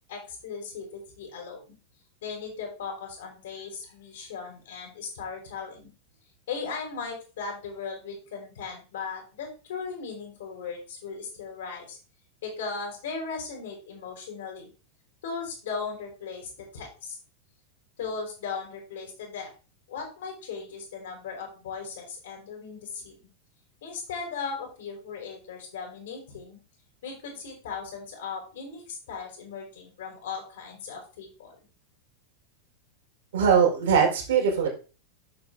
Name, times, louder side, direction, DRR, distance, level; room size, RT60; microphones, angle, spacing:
voice 1, 0.1-1.8 2.2-5.9 6.5-12.0 12.4-14.7 15.2-17.2 18.0-19.5 19.9-23.2 23.8-26.6 27.0-31.5, left 5 dB, 60° left, 1 dB, 5.1 m, -37 dB
voice 2, 33.3-34.7, right 7 dB, 60° right, 0 dB, 4.4 m, -21 dB
10.5 x 7.2 x 3.7 m, 0.34 s
figure-of-eight pair, 90°, 0 cm